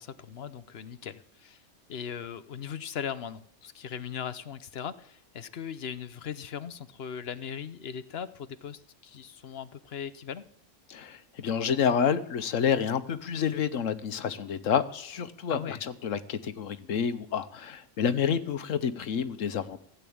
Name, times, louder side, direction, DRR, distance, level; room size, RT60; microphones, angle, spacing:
voice 1, 0.0-1.6 1.9-10.4 15.5-15.8, left 8 dB, 55° left, 14 dB, 1.0 m, -39 dB
voice 2, 10.9-19.8, left 7 dB, 85° left, 11 dB, 1.3 m, -29 dB
16.0 x 8.3 x 8.7 m, 0.66 s
omnidirectional pair, 1.3 m